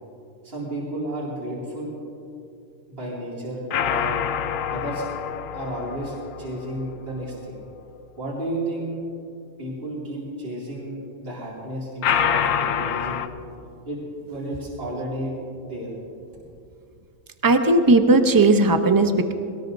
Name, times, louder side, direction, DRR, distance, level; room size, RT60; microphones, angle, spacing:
voice 1, 0.4-1.9 2.9-4.2 4.7-5.0 5.5-7.6 8.2-9.0 9.6-13.3 13.9-14.0 14.3-15.3 15.6-15.9, right 1 dB, 50° right, -7 dB, 2.8 m, -32 dB
sound 1, 3.7-7.0 12.0-13.3, left 8 dB, 85° left, 1.1 m, -26 dB
voice 2, 17.4-19.3, right 2 dB, 20° right, 7 dB, 0.6 m, -17 dB
21.0 x 18.5 x 2.7 m, 2.6 s
omnidirectional pair, 1.3 m